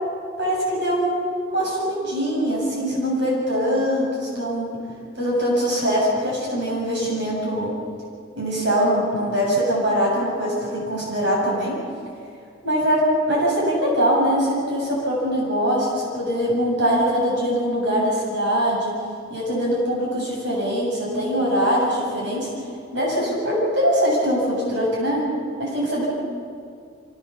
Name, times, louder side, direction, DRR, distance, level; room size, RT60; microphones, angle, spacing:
voice 1, 0.4-1.2 1.5-4.7 5.2-7.7 8.4-11.8 12.6-18.9 19.3-22.6 22.9-25.2 25.6-26.1, equal, 65° right, -4 dB, 7.7 m, -22 dB
25.0 x 18.0 x 7.2 m, 2.3 s
head